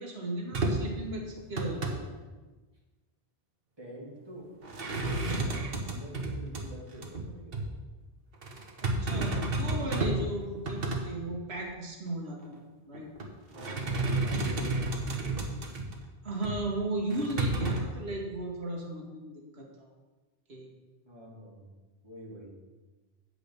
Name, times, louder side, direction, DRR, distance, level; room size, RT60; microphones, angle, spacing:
voice 1, 0.0-2.2 8.8-12.6 12.9-13.1 16.2-19.9 20.5-20.7, right 1 dB, 90° right, -1 dB, 1.7 m, -36 dB
sound 1, 0.5-1.0 1.4-2.0 4.6-6.6 7.0-7.2 7.5-7.7 8.4-10.3 10.5-11.0 11.6-11.7 12.9-13.3 13.5-16.0 16.4-16.6 17.1-17.8, right 2 dB, 65° right, 1.3 m, -31 dB
voice 2, 3.8-4.5 4.9-7.7 13.5-15.6 21.1-21.7 22.0-22.6, right 1 dB, 25° right, -4 dB, 2.1 m, -46 dB
8.4 x 4.9 x 6.8 m, 1.2 s
omnidirectional pair, 1.1 m